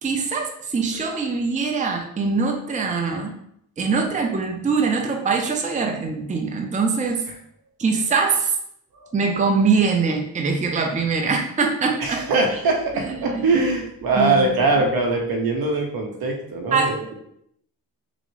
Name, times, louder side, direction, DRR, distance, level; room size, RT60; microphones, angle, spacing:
voice 1, 0.0-3.4 3.8-7.2 7.8-8.5 9.1-12.2 12.9-13.4 14.2-14.5 16.7-17.0, right 4 dB, 20° right, 2 dB, 0.5 m, -23 dB
voice 2, 12.0-17.2, right 3 dB, 70° right, 1 dB, 0.8 m, -22 dB
3.4 x 2.0 x 3.1 m, 0.72 s
supercardioid pair, 50°, 38 cm